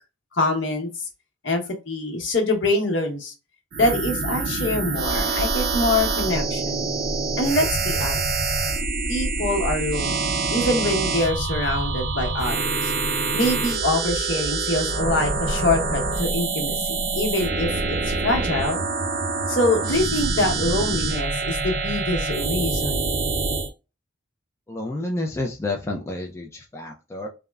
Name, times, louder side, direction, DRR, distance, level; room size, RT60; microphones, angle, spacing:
voice 1, 0.3-0.9 1.4-3.3 3.7-6.9 7.4-8.2 9.1-12.9 13.3-18.8 19.5-23.1, left 2 dB, 65° left, 3 dB, 1.0 m, -25 dB
sound 1, 3.7-23.7, right 3 dB, 45° right, 0.5 m, -25 dB
voice 2, 24.7-27.3, left 2 dB, 15° left, 1 dB, 0.4 m, -30 dB
3.5 x 2.1 x 2.3 m, 0.29 s
head